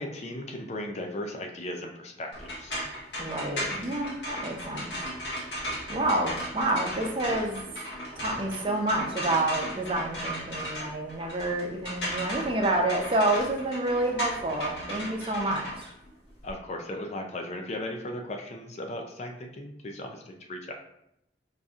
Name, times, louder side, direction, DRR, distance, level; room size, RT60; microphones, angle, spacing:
voice 1, 0.0-2.8 16.4-20.7, left 1 dB, 35° left, 3 dB, 0.4 m, -37 dB
sound 1, 2.3-16.5, equal, 65° left, 1.1 m, -36 dB
voice 2, 3.2-4.9 5.9-7.6 8.2-15.9, right 2 dB, 30° right, 1 dB, 0.5 m, -28 dB
5.5 x 2.6 x 2.4 m, 0.80 s
head